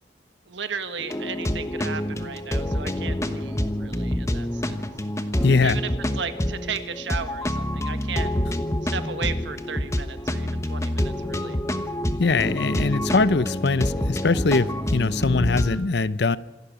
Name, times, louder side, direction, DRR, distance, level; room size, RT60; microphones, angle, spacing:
voice 1, 0.5-4.7 5.6-5.9 6.1-8.3 8.9-11.6, right 6 dB, 70° right, 1.6 m, -35 dB
sound 1, 1.0-15.8, left 1 dB, 15° left, 1.1 m, -27 dB
voice 2, 5.4-5.8 12.2-16.4, left 3 dB, 60° left, 0.7 m, -22 dB
26.5 x 12.0 x 8.9 m
head